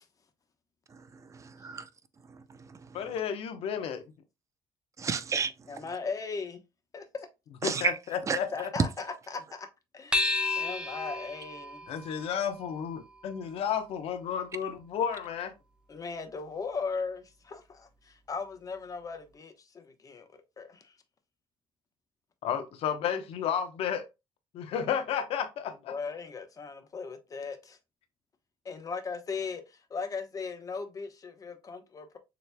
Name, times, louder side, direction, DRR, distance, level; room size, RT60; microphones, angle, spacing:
voice 1, 1.3-1.9 2.3-3.0 5.0-5.5 7.6-8.0 8.3-8.4, right 5 dB, 30° right, 0.6 m, -32 dB
voice 2, 2.9-4.0 7.6-8.7 11.9-15.5 22.4-24.0 24.5-25.9, left 8 dB, 70° left, 0.9 m, -32 dB
voice 3, 5.7-6.6 6.9-7.3 8.5-9.7 9.9-11.9 15.9-20.3 20.6-20.9 25.9-27.8 28.6-32.2, left 5 dB, 35° left, 1.0 m, -38 dB
sound 1, 10.1-14.9, left 3 dB, 10° right, 0.9 m, -34 dB
6.9 x 3.2 x 2.2 m
cardioid pair, 110°, 10 cm